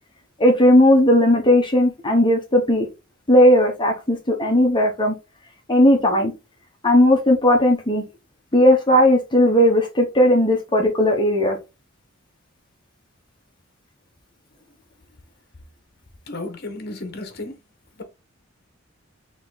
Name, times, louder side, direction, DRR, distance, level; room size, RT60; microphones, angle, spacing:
voice 1, 0.4-2.9 3.3-5.1 5.7-6.3 6.8-8.0 8.5-11.6, left 1 dB, 20° left, 1.0 m, -16 dB
voice 2, 16.3-17.6 18.0-18.1, left 2 dB, 50° left, 1.1 m, -33 dB
4.0 x 3.0 x 3.8 m
head